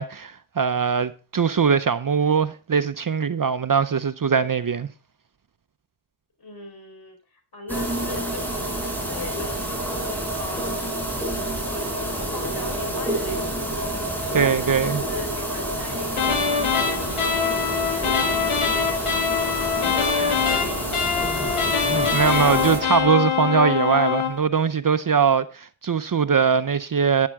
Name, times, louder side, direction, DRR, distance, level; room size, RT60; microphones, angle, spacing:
voice 1, 0.0-4.9 14.3-15.0 22.1-27.3, right 6 dB, 40° right, 0.7 m, -21 dB
voice 2, 6.4-9.7 10.3-10.9 11.8-13.8 14.3-16.9 17.1-19.6 19.9-21.6, left 2 dB, 50° left, 4.4 m, -39 dB
sound 1, 7.7-22.8, right 1 dB, 5° left, 5.0 m, -28 dB
sound 2, 16.2-24.4, left 7 dB, 85° left, 1.6 m, -24 dB
Human voice, 19.5-20.2 21.2-23.1, left 3 dB, 25° left, 1.2 m, -37 dB
11.0 x 9.8 x 3.6 m
cardioid pair, 45°, 49 cm